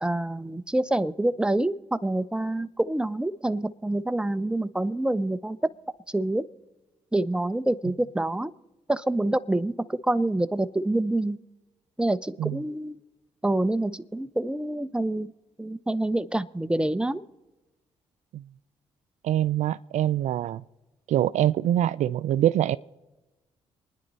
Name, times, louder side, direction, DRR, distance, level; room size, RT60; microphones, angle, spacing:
voice 1, 0.0-5.6 6.1-6.4 7.1-8.5 8.9-11.4 12.0-13.0 13.4-15.3 15.6-17.2, right 1 dB, 5° right, 0.7 m, -27 dB
voice 2, 19.2-20.6 21.1-22.8, right 12 dB, 65° right, 0.4 m, -24 dB
27.0 x 10.5 x 4.1 m
hypercardioid pair, 50°, 13 cm